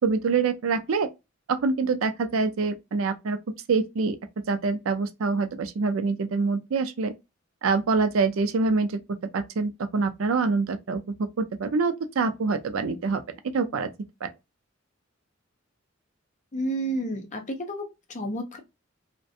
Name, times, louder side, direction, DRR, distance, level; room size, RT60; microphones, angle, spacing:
voice 1, 0.0-1.1 1.5-3.4 3.7-4.2 4.5-7.1 7.6-13.2 13.5-13.9 14.2-14.3, right 4 dB, 75° right, 0.4 m, -25 dB
voice 2, 16.5-18.6, right 1 dB, 35° left, 0.6 m, -31 dB
2.4 x 2.1 x 2.6 m
head